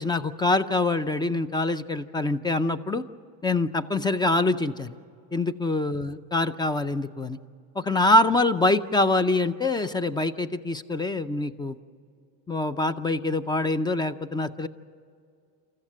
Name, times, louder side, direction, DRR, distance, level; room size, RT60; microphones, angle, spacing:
voice 1, 0.0-3.0 3.4-4.9 5.3-7.4 7.8-11.8 12.5-14.7, left 2 dB, 10° left, 14 dB, 0.5 m, -25 dB
27.5 x 14.5 x 7.9 m, 2.4 s
supercardioid pair, 110°, 49 cm